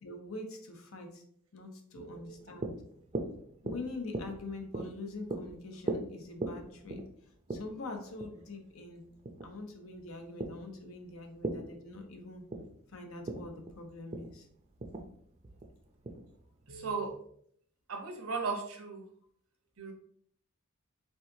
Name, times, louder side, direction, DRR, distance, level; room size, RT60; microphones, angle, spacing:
voice 1, 0.0-1.2 1.5-2.7 3.6-7.0 7.5-9.0 9.4-12.4 12.9-14.5, left 2 dB, 80° left, 4 dB, 0.8 m, -44 dB
voice 2, 2.0-2.3 16.7-17.1 17.9-19.0 19.8-19.9, right 4 dB, 75° right, 3 dB, 1.0 m, -36 dB
sound 1, 2.2-16.8, right 2 dB, 35° right, 0.5 m, -41 dB
4.7 x 3.8 x 2.7 m, 0.64 s
head